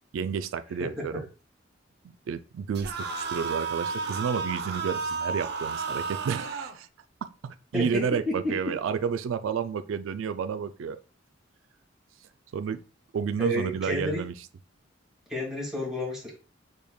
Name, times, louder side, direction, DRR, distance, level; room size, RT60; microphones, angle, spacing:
voice 1, 0.1-1.2 2.3-6.9 7.4-11.0 12.5-12.8 13.1-14.3, right 6 dB, 85° right, 0.3 m, -31 dB
sound 1, 2.7-6.8, right 4 dB, 60° right, 0.7 m, -32 dB
voice 2, 7.7-8.7 13.4-14.2 15.3-16.3, equal, 5° right, 1.8 m, -30 dB
6.5 x 3.5 x 2.3 m
head